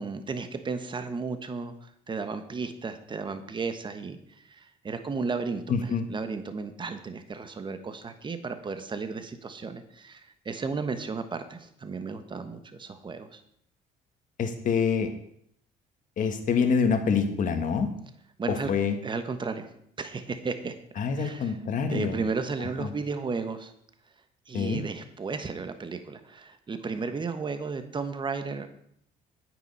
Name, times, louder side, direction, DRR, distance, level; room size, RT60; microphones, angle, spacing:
voice 1, 0.0-13.4 18.4-18.7 19.0-19.7 20.0-20.7 21.2-21.5 21.9-23.7 24.5-28.7, right 4 dB, 30° right, 9 dB, 1.2 m, -34 dB
voice 2, 5.7-6.0 14.4-15.1 16.2-17.9 18.7-18.9 21.0-22.2 22.8-22.9 24.5-24.8, left 6 dB, 50° left, 7 dB, 1.6 m, -26 dB
9.3 x 9.2 x 5.5 m, 0.69 s
cardioid pair, 110°, 17 cm